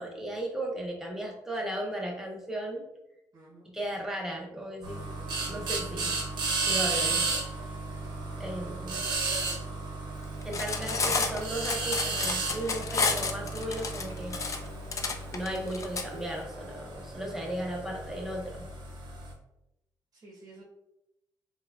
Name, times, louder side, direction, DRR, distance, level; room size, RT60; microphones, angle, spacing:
voice 1, 0.0-2.9 3.7-6.1 6.6-7.3 8.4-9.0 10.4-14.4 15.3-18.7, right 1 dB, 5° right, -1 dB, 0.9 m, -36 dB
voice 2, 3.3-3.7 9.3-9.8 10.8-11.0 20.1-20.6, right 3 dB, 45° right, -3 dB, 0.9 m, -47 dB
sound 1, 4.8-19.3, right 3 dB, 85° right, 0.8 m, -34 dB
Cutlery silverware, 10.4-16.0, left 4 dB, 45° left, 0.4 m, -30 dB
4.5 x 2.3 x 2.3 m, 0.88 s
cardioid pair, 90°, 8 cm